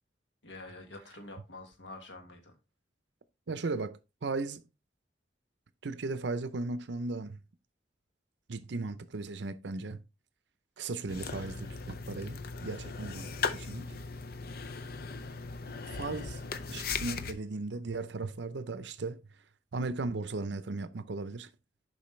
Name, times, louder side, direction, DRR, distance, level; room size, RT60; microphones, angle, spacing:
voice 1, 0.4-2.6, left 2 dB, 80° left, 1.4 m, -47 dB
voice 2, 3.5-4.6 5.8-7.4 8.5-10.0 10.8-14.0 15.9-16.4 16.7-19.2 19.7-21.5, right 3 dB, 70° right, 0.6 m, -36 dB
sound 1, 11.1-17.3, left 5 dB, 55° left, 0.6 m, -38 dB
7.1 x 5.2 x 3.2 m
head